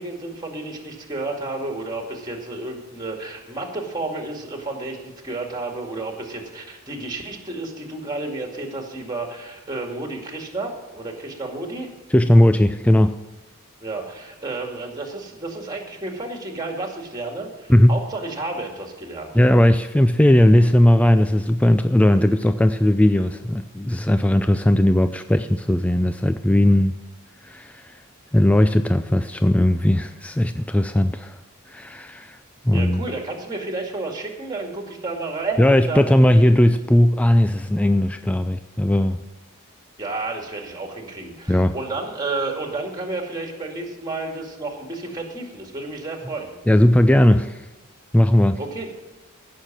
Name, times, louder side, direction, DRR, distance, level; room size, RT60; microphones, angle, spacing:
voice 1, 0.0-11.9 13.8-19.3 32.7-36.1 40.0-46.5 48.6-48.9, right 2 dB, 20° right, 2 dB, 2.2 m, -31 dB
voice 2, 12.1-13.2 17.7-18.0 19.3-26.9 27.4-28.0 28.3-31.4 31.7-32.4 32.6-33.0 35.6-39.2 41.5-41.7 46.7-47.6 48.1-48.6, left 1 dB, 5° left, 9 dB, 0.3 m, -17 dB
15.5 x 6.6 x 7.4 m, 1.2 s
head